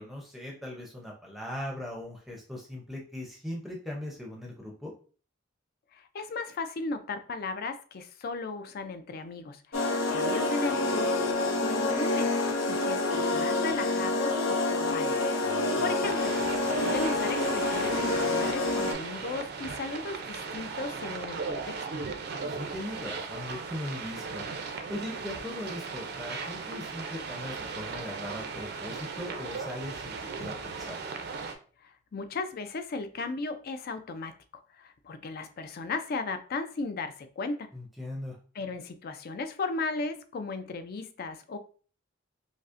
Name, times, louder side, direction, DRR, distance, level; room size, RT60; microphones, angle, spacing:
voice 1, 0.0-4.9 15.4-15.9 22.5-24.4 24.9-31.0 37.7-38.4, left 1 dB, ahead, -2 dB, 0.6 m, -39 dB
voice 2, 5.9-15.2 15.8-16.4 16.7-21.8 31.8-37.7 38.6-41.6, left 3 dB, 50° left, 9 dB, 0.4 m, -36 dB
sound 1, 9.7-18.9, left 2 dB, 85° left, 0.8 m, -27 dB
sound 2, 16.0-31.5, right 4 dB, 55° right, 0.5 m, -37 dB
5.0 x 2.1 x 2.5 m, 0.40 s
head